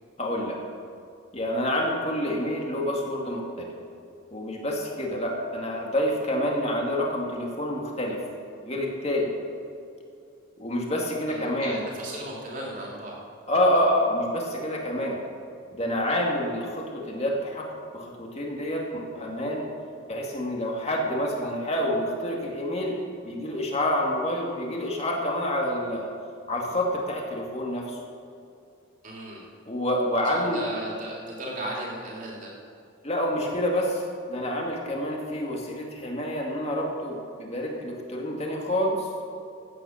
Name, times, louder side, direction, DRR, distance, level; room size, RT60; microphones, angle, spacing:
voice 1, 0.2-0.6 1.3-3.7 4.3-8.2 8.6-9.3 10.6-11.8 13.5-15.2 15.7-17.7 17.9-19.7 20.1-23.0 23.2-26.1 26.5-28.0 29.7-30.6 33.0-39.1, left 1 dB, 30° left, -1 dB, 2.3 m, -28 dB
voice 2, 11.3-13.2 29.0-29.4 30.2-32.5, right 1 dB, 40° right, -3 dB, 3.3 m, -36 dB
15.5 x 9.5 x 6.5 m, 2.5 s
head